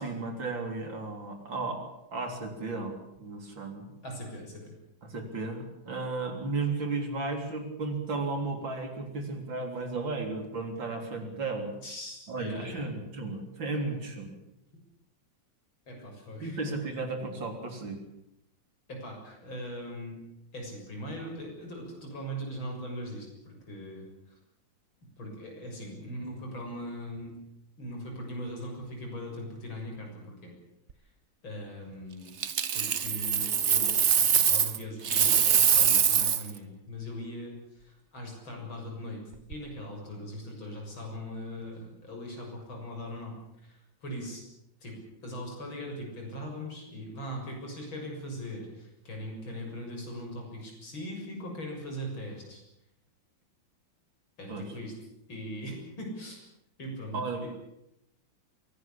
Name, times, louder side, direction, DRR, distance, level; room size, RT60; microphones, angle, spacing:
voice 1, 0.0-3.9 5.0-11.7 12.3-14.4 16.4-18.0 54.5-54.7 57.1-57.5, right 3 dB, 70° right, 4 dB, 4.3 m, -34 dB
voice 2, 4.0-4.7 11.8-12.8 15.9-16.6 18.9-20.2 20.5-24.1 25.2-27.4 27.8-30.5 31.4-32.4 32.7-39.2 39.5-43.4 43.6-44.4 44.8-52.6 54.4-54.9 55.3-56.4 56.8-57.5, equal, 80° left, 1 dB, 7.7 m, -40 dB
Coin (dropping), 32.4-34.8 35.0-36.5 39.3-39.5, right 8 dB, 45° right, 1.0 m, -24 dB
23.5 x 18.0 x 8.5 m, 0.84 s
omnidirectional pair, 2.2 m